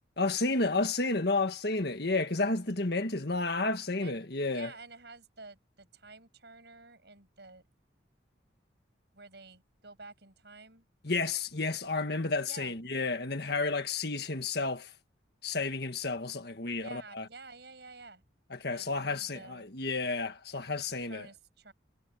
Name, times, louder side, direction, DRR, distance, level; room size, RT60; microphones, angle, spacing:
voice 1, 0.2-4.7 11.0-14.9 15.4-17.3 18.5-21.3, left 3 dB, 55° left, 1.8 m, -31 dB
voice 2, 4.5-7.6 9.1-10.9 12.4-12.8 16.8-18.2 18.7-19.7 21.1-21.7, right 3 dB, 60° right, 7.8 m, -50 dB
head